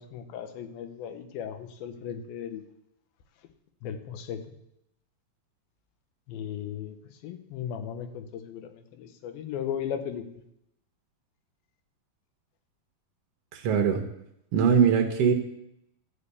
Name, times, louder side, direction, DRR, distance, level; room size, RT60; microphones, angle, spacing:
voice 1, 0.0-2.6 3.8-4.4 6.3-10.4, left 9 dB, 85° left, 8 dB, 2.8 m, -36 dB
voice 2, 13.5-14.0 14.5-15.3, right 7 dB, 70° right, 5 dB, 1.4 m, -21 dB
12.5 x 5.4 x 8.3 m, 0.80 s
omnidirectional pair, 4.1 m